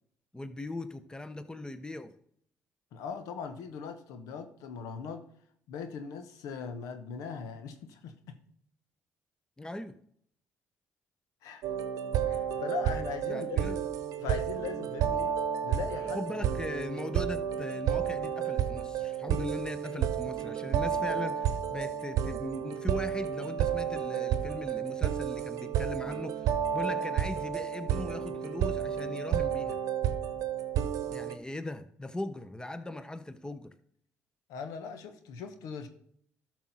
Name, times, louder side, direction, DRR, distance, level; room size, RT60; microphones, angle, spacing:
voice 1, 0.3-2.1 9.6-9.9 13.3-13.7 16.0-29.8 31.1-33.7, left 2 dB, 15° left, 11 dB, 0.9 m, -39 dB
voice 2, 2.9-5.2 5.7-8.4 11.4-11.7 12.3-13.8 14.2-15.3 15.6-16.5 34.5-35.9, left 6 dB, 75° left, 8 dB, 1.1 m, -40 dB
sound 1, 11.6-31.4, right 9 dB, 70° right, 0.9 m, -31 dB
12.5 x 6.3 x 4.1 m, 0.65 s
hypercardioid pair, 55°, 6 cm